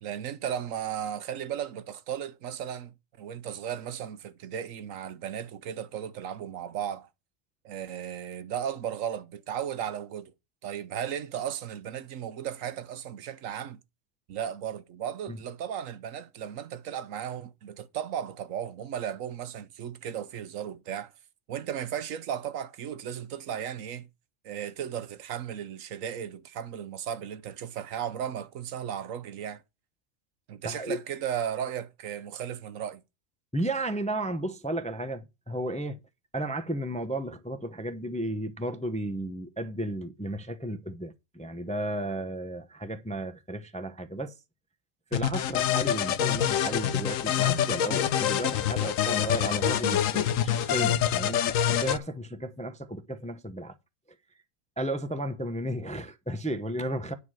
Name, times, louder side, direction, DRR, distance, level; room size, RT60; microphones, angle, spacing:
voice 1, 0.0-7.1 7.6-10.3 10.6-13.8 14.3-21.1 21.5-24.1 24.4-29.6 30.5-33.0, right 9 dB, 80° right, 1.1 m, -35 dB
voice 2, 30.6-31.0 33.5-36.0 36.3-44.3 45.1-51.4 51.7-53.8 54.8-57.1, right 1 dB, 10° left, 0.6 m, -33 dB
sound 1, 45.1-52.0, left 10 dB, 80° left, 1.1 m, -26 dB
9.7 x 4.8 x 7.4 m
omnidirectional pair, 1.4 m